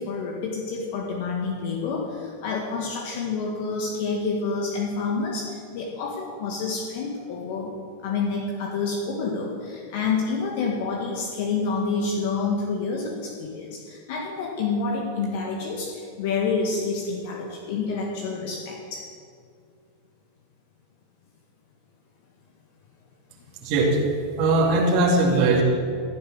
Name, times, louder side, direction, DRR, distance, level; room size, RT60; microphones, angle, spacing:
voice 1, 0.0-7.7 8.0-19.0, left 4 dB, 55° left, -1 dB, 1.9 m, -28 dB
voice 2, 23.6-24.0 24.4-25.6, right 2 dB, 45° right, -2 dB, 2.3 m, -20 dB
15.0 x 7.1 x 6.8 m, 2.2 s
figure-of-eight pair, 90°, 0 cm